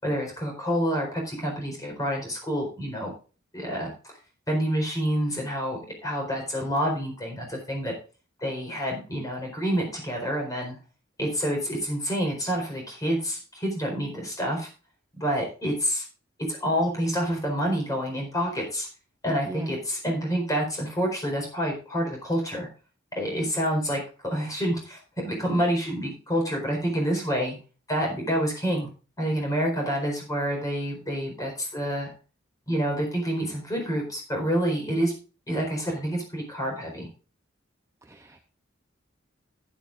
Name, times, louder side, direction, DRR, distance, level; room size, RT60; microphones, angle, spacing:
voice 1, 0.0-3.1 3.5-4.1 4.5-7.9 8.4-10.8 11.2-14.7 15.2-16.0 16.5-18.9 19.2-22.7 23.1-27.6 27.9-28.9 29.2-32.1 32.7-35.1 35.5-37.1, equal, 20° left, 0 dB, 4.4 m, -28 dB
voice 2, 19.5-19.8 38.1-38.4, right 1 dB, 15° right, 5 dB, 0.7 m, -38 dB
14.5 x 10.5 x 2.5 m, 0.35 s
head